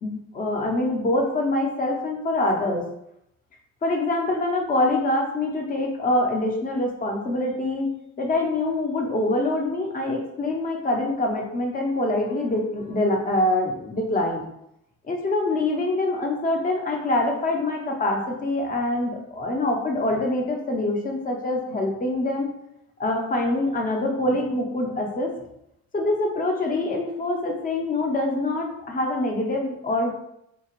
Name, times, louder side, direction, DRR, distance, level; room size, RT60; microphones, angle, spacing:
voice 1, 0.0-2.8 3.8-7.9 8.2-14.4 15.1-22.5 23.0-25.3 25.9-30.2, left 2 dB, 30° left, 1 dB, 0.7 m, -25 dB
4.3 x 2.8 x 2.9 m, 0.79 s
cardioid pair, 165°, 30 cm